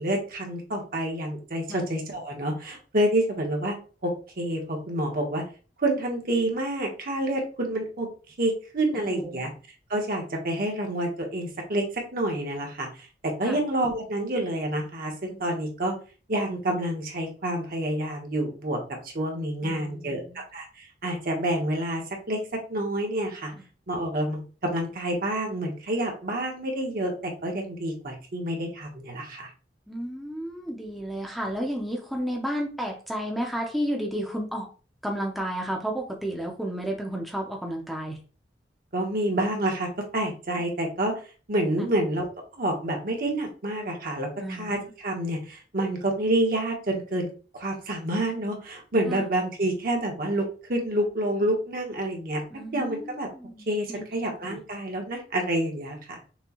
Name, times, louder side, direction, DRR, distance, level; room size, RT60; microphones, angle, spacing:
voice 1, 0.0-3.7 4.0-5.4 5.8-8.1 8.4-9.5 9.9-15.9 16.3-18.8 19.0-20.2 20.5-22.0 22.3-22.4 22.7-23.5 23.9-29.5 38.9-41.1 41.5-42.3 42.6-52.4 52.7-53.3 53.7-56.2, right 1 dB, 55° right, 1 dB, 1.1 m, -28 dB
voice 2, 9.1-9.4 13.4-13.6 19.6-20.4 29.9-34.7 35.0-38.2 44.4-44.8 49.1-49.2 52.5-54.0 54.4-54.6, equal, ahead, 0 dB, 0.6 m, -32 dB
6.0 x 2.2 x 2.9 m, 0.36 s
head